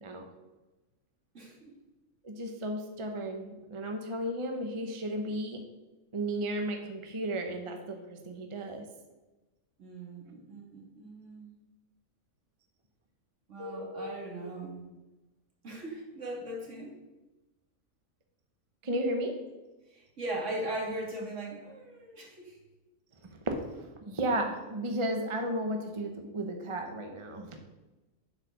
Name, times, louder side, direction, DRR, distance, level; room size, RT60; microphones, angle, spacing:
voice 1, 1.3-1.8 9.8-11.5 13.5-14.8 15.6-17.0 19.9-22.6, right 1 dB, 60° right, -1 dB, 2.3 m, -39 dB
voice 2, 2.2-5.6 6.1-8.8 13.6-14.2 18.8-19.3 23.5-27.6, right 1 dB, 25° right, 4 dB, 0.8 m, -34 dB
7.9 x 4.9 x 6.6 m, 1.1 s
omnidirectional pair, 1.4 m